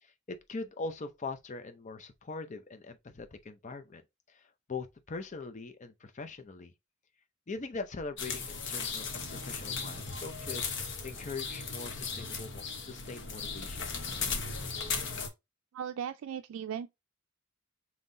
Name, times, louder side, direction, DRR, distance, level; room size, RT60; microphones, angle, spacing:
voice 1, 0.0-4.0 4.3-4.4 4.7-6.7 7.5-13.9, left 3 dB, 35° left, 0.6 m, -42 dB
sound 1, 8.2-15.3, left 5 dB, 60° left, 1.0 m, -37 dB
voice 2, 15.7-16.9, right 8 dB, 90° right, 0.3 m, -37 dB
5.4 x 3.1 x 2.6 m
head